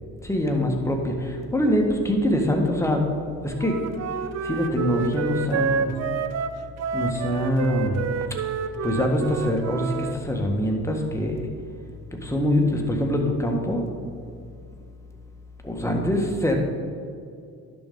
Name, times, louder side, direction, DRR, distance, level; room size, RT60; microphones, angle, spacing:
voice 1, 0.2-3.1 3.4-3.8 4.4-6.0 6.9-8.0 8.8-11.5 12.1-13.9 15.6-16.5, left 1 dB, 5° left, 1 dB, 1.6 m, -24 dB
Wind instrument woodwind instrument, 3.6-10.1, right 6 dB, 35° right, 0.6 m, -29 dB
11.0 x 6.8 x 3.8 m, 2.4 s
hypercardioid pair, 55°, 46 cm